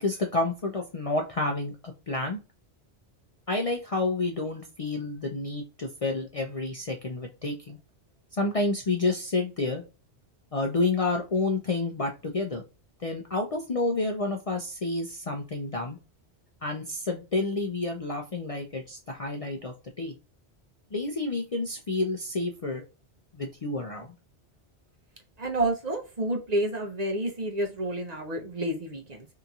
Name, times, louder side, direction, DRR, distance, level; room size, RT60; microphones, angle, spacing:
voice 1, 0.0-2.4 3.5-7.8 8.3-9.8 10.5-12.6 13.0-16.0 16.6-20.1 20.9-22.9 23.3-24.1, left 2 dB, 45° left, 2 dB, 0.5 m, -29 dB
voice 2, 25.4-29.3, right 1 dB, 45° right, 2 dB, 0.7 m, -29 dB
2.9 x 2.7 x 2.3 m, 0.30 s
omnidirectional pair, 1.1 m